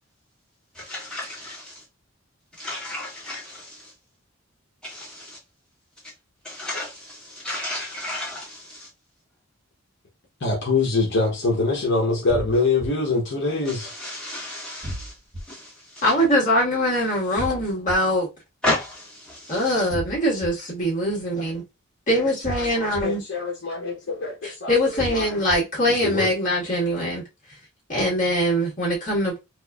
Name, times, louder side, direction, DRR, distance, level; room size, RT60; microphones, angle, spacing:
voice 1, 0.9-1.6 2.6-3.6 4.8-5.3 6.5-6.9 7.4-8.6 14.0-15.1 15.5-15.6 18.6-19.4, left 1 dB, 5° left, 2.0 m, -31 dB
voice 2, 10.4-13.9 23.0-25.3 25.9-26.3, left 3 dB, 55° left, 1.0 m, -24 dB
sound 1, 12.3-12.9 14.8-15.4 17.4-17.9 19.9-20.5 22.4-23.0 25.0-25.6, equal, 15° right, 1.2 m, -32 dB
voice 3, 16.0-18.3 19.5-21.6 22.1-23.2 24.7-27.2 27.9-29.4, equal, 40° left, 1.7 m, -22 dB
4.6 x 2.5 x 2.3 m
head